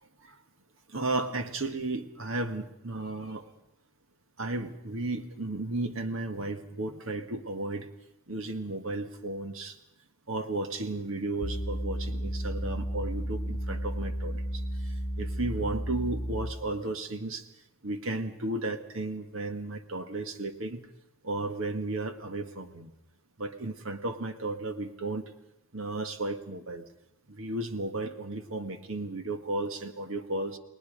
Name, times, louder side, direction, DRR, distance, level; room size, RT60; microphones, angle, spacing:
voice 1, 0.9-3.5 4.4-7.9 8.3-9.8 10.3-17.4 17.8-20.8 21.2-22.9 23.4-25.2 25.7-26.8 27.3-30.6, right 2 dB, 65° right, 8 dB, 1.7 m, -34 dB
sound 1, 11.4-16.7, equal, 45° left, 1.3 m, -33 dB
30.0 x 20.0 x 5.2 m, 0.82 s
head